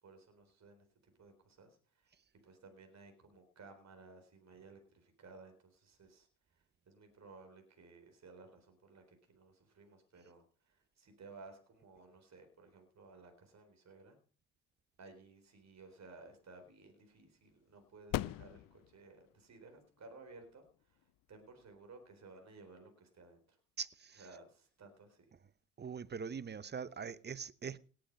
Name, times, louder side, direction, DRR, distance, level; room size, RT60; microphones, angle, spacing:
voice 1, 0.0-2.1 2.4-14.2 15.0-23.6 24.2-25.3, right 3 dB, 40° right, 4.2 m, -57 dB
sound 1, 15.6-22.8, left 15 dB, 55° left, 0.6 m, -46 dB
voice 2, 23.8-24.2 25.8-27.8, right 6 dB, 25° right, 0.8 m, -42 dB
18.0 x 7.7 x 5.3 m
hypercardioid pair, 65°, 40 cm